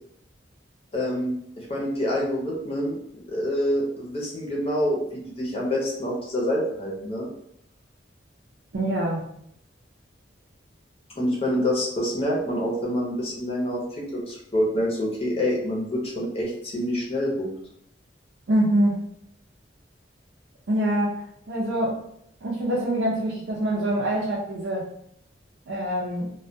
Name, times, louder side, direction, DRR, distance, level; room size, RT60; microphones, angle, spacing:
voice 1, 0.9-3.0 3.3-7.3 11.2-17.5, equal, 35° left, -3 dB, 0.6 m, -27 dB
voice 2, 8.7-9.2 18.5-19.0 20.7-21.2 21.5-22.0 22.4-24.9 25.7-26.3, right 1 dB, 80° right, -6 dB, 0.5 m, -25 dB
2.2 x 2.1 x 2.6 m, 0.73 s
head